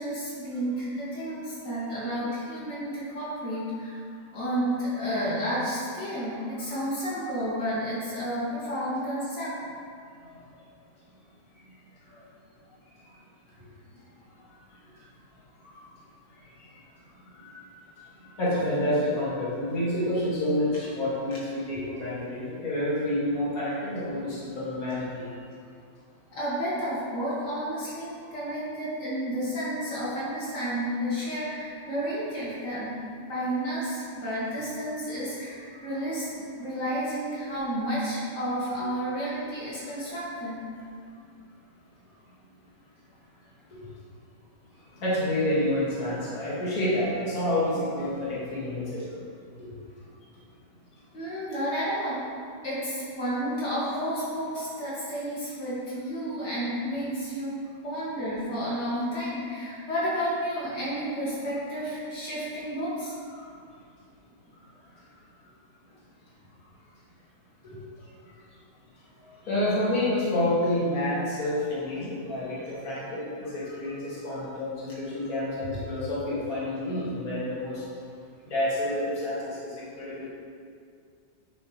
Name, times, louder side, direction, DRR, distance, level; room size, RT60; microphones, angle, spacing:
voice 1, 0.0-4.0 4.3-9.6 26.3-32.9 33.2-40.6 51.1-52.2 52.6-57.5 57.8-63.1, equal, 75° left, -9 dB, 2.8 m, -31 dB
voice 2, 18.4-25.2 45.0-49.0 63.3-63.4 69.2-77.8 78.5-80.3, left 1 dB, 55° left, -9 dB, 2.6 m, -28 dB
9.3 x 7.7 x 3.2 m, 2.3 s
omnidirectional pair, 1.9 m